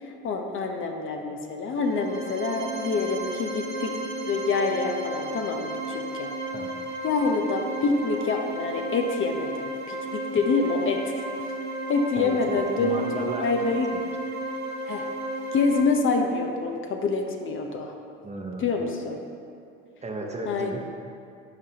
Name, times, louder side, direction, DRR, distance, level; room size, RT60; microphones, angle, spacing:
voice 1, 0.0-3.9 4.3-6.3 7.0-11.3 11.9-13.9 14.9-15.1 15.5-17.9 18.6-19.2 20.5-20.8, left 4 dB, 45° left, 3 dB, 0.8 m, -26 dB
sound 1, 1.7-15.8, right 1 dB, 75° right, 1.0 m, -34 dB
voice 2, 12.2-13.5 13.9-14.0 18.2-18.7 20.0-20.8, right 2 dB, 25° right, 1 dB, 1.0 m, -34 dB
11.0 x 4.7 x 2.9 m, 2.4 s
hypercardioid pair, 75°, 29 cm